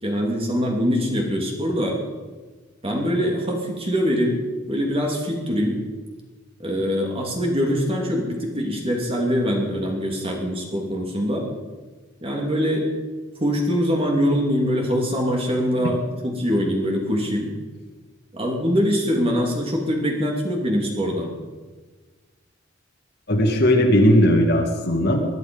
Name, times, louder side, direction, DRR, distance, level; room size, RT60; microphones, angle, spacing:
voice 1, 0.0-2.0 2.8-4.4 4.7-5.8 6.6-11.5 12.2-12.9 13.4-16.0 16.4-17.5 18.3-21.3, equal, 30° right, 0 dB, 2.8 m, -23 dB
voice 2, 23.3-25.2, equal, 55° left, 2 dB, 2.4 m, -17 dB
20.5 x 11.0 x 5.4 m, 1.4 s
head